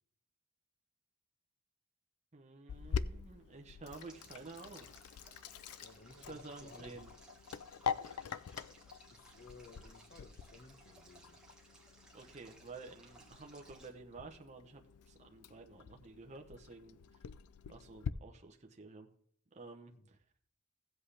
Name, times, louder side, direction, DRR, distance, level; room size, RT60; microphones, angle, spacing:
voice 1, 2.3-4.9 6.3-7.1 12.1-17.0 17.7-19.1 19.5-20.2, right 3 dB, 30° right, 2 dB, 0.8 m, -51 dB
Sink (filling or washing), 2.7-18.1, left 6 dB, 90° left, 0.4 m, -45 dB
Stream, 3.9-13.9, right 2 dB, 5° right, 1.5 m, -61 dB
voice 2, 5.8-7.0 9.1-11.4 19.9-20.1, left 3 dB, 45° left, 7 dB, 1.1 m, -57 dB
15.5 x 7.9 x 3.3 m, 0.64 s
head